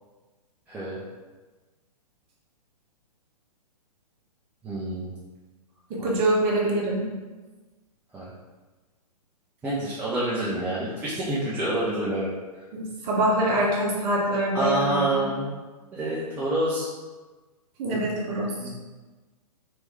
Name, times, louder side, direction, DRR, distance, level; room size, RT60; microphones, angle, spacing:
voice 1, 0.7-1.0 4.6-5.1 6.0-6.1 8.1-8.3 9.6-12.3 14.5-15.6 15.9-16.9 17.9-18.0 18.6-18.7, right 1 dB, 10° right, -9 dB, 0.4 m, -27 dB
voice 2, 5.9-7.1 12.7-15.3 17.8-18.7, right 1 dB, 30° right, -3 dB, 0.9 m, -25 dB
3.3 x 3.0 x 3.1 m, 1.3 s
figure-of-eight pair, 115°, 20 cm